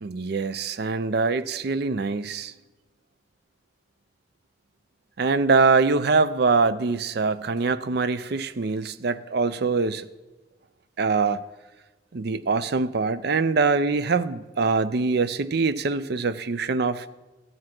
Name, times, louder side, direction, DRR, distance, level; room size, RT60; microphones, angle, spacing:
voice 1, 0.0-2.5 5.2-10.1 11.0-11.4 12.1-17.1, right 4 dB, 60° right, 15 dB, 0.5 m, -23 dB
14.0 x 7.7 x 6.0 m, 1.1 s
head